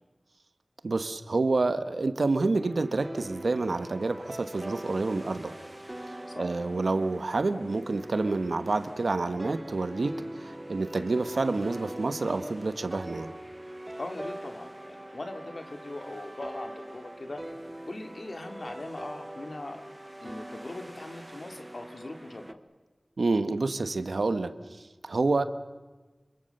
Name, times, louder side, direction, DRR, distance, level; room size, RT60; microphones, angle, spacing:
voice 1, 0.8-5.5 6.1-13.3 23.2-25.4, right 3 dB, 85° right, 11 dB, 1.2 m, -28 dB
sound 1, 2.6-22.5, right 1 dB, 20° right, 1.1 m, -43 dB
voice 2, 14.0-17.4 17.9-19.8 20.2-22.6, left 2 dB, 60° left, 5 dB, 2.5 m, -40 dB
26.5 x 24.5 x 6.7 m, 1.2 s
wide cardioid pair, 70°, 0 cm